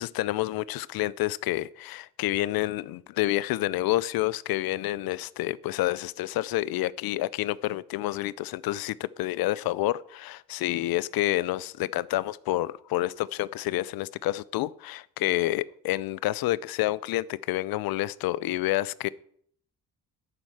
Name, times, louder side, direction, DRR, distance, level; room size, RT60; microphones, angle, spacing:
voice 1, 0.0-19.1, left 16 dB, 70° left, 0.5 m, -29 dB
12.0 x 4.4 x 7.6 m
supercardioid pair, 60°, 37 cm